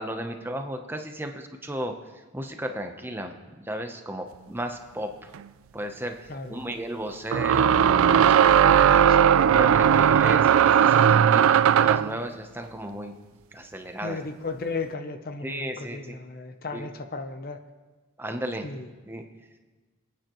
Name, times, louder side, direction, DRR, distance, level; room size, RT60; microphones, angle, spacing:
voice 1, 0.0-5.3 5.7-7.7 9.5-13.1 13.5-14.2 15.4-16.2 16.7-16.9 18.2-18.7 19.1-19.2, right 1 dB, 10° right, 4 dB, 0.7 m, -35 dB
sound 1, 5.4-5.5 7.3-12.2, right 8 dB, 70° right, 0.3 m, -18 dB
voice 2, 6.3-6.6 8.6-9.2 14.0-17.6 18.6-18.9, left 3 dB, 45° left, 8 dB, 0.7 m, -35 dB
27.5 x 9.3 x 3.0 m, 1.3 s
head